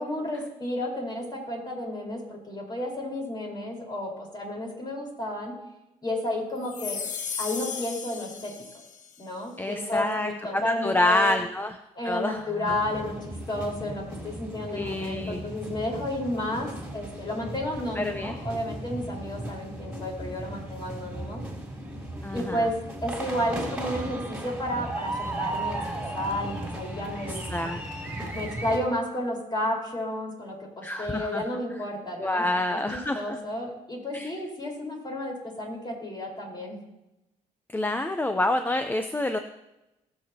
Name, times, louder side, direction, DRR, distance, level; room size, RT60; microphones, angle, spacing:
voice 1, 0.0-5.5 6.0-7.0 7.4-8.5 9.2-11.3 12.0-21.4 22.3-27.4 28.3-36.8, left 1 dB, 35° left, -1 dB, 4.4 m, -32 dB
sound 1, 6.6-9.2, left 6 dB, 70° left, 1.0 m, -35 dB
voice 2, 9.6-11.8 12.0-12.8 14.7-15.4 18.0-18.3 22.2-22.7 27.2-27.8 30.8-31.4 32.2-33.4 34.1-34.3 37.7-39.4, left 1 dB, 15° left, 7 dB, 0.7 m, -28 dB
sound 2, 12.7-28.8, right 1 dB, 10° right, 3.3 m, -36 dB
19.5 x 6.9 x 2.9 m, 0.95 s
cardioid pair, 80°, 13 cm